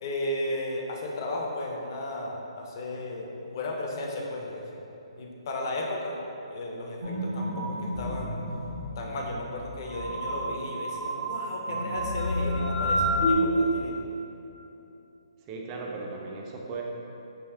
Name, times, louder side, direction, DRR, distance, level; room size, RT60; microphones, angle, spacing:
voice 1, 0.0-4.8 5.2-6.2 6.5-8.4 9.0-14.0, left 1 dB, 40° left, 0 dB, 0.5 m, -34 dB
sound 1, 7.0-13.3, equal, 60° right, 1.0 m, -30 dB
voice 2, 15.5-16.8, right 3 dB, 20° right, -1 dB, 0.3 m, -37 dB
3.5 x 2.6 x 3.3 m, 2.9 s
hypercardioid pair, 160°, 3 cm